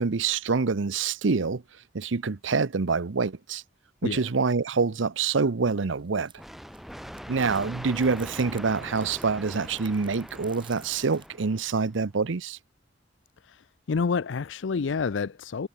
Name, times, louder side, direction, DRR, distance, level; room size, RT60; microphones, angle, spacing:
voice 1, 0.0-1.6 1.9-3.6 4.0-6.3 7.3-12.6, right 4 dB, 80° right, 0.7 m, -26 dB
sound 1, 5.6-11.3, right 6 dB, 25° right, 6.5 m, -54 dB
sound 2, 6.4-12.0, equal, ahead, 2.2 m, -42 dB
voice 2, 13.9-15.7, left 5 dB, 70° left, 0.5 m, -28 dB
head